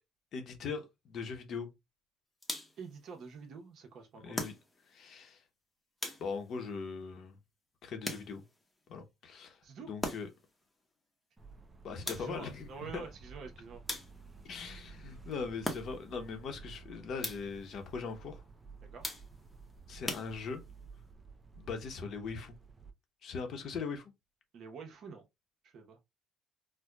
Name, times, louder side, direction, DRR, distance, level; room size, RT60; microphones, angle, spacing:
voice 1, 0.3-1.7 4.2-4.5 4.9-5.4 6.2-7.4 7.8-8.4 8.9-9.6 9.9-10.3 11.8-13.1 14.4-18.4 19.9-20.6 21.6-22.5 23.2-24.0, left 5 dB, 55° left, 0.9 m, -40 dB
sound 1, 2.4-2.9 4.3-5.0 6.0-6.6 8.0-8.6 10.0-10.5 12.1-12.6 13.9-14.4 15.6-16.2 17.2-17.7 19.0-19.5 20.1-20.8, left 1 dB, 15° left, 0.9 m, -40 dB
voice 2, 2.8-4.4 9.6-9.9 12.1-13.8 18.8-19.2 24.5-25.2 25.6-26.0, right 5 dB, 55° right, 1.0 m, -47 dB
sound 2, 11.4-22.9, right 4 dB, 15° right, 0.6 m, -53 dB
sound 3, 11.9-16.8, right 1 dB, 80° right, 0.7 m, -62 dB
4.4 x 2.2 x 2.3 m
cardioid pair, 120°, 0 cm